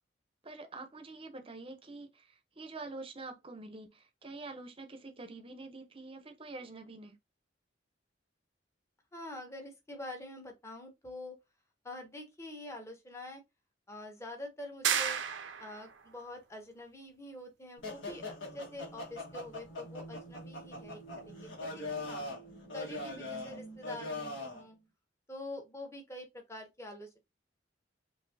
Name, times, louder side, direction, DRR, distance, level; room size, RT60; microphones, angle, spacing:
voice 1, 0.4-2.2 2.6-7.1, right 3 dB, 30° right, 0.7 m, -46 dB
voice 2, 9.1-11.4 11.8-13.4 13.9-15.2 15.6-21.0 21.3-22.3 22.7-24.8 25.3-27.2, left 1 dB, 15° left, 1.0 m, -46 dB
sound 1, 14.8-15.9, right 8 dB, 75° right, 0.6 m, -32 dB
sound 2, 17.8-24.6, left 2 dB, 80° left, 1.6 m, -42 dB
5.2 x 2.6 x 2.7 m
head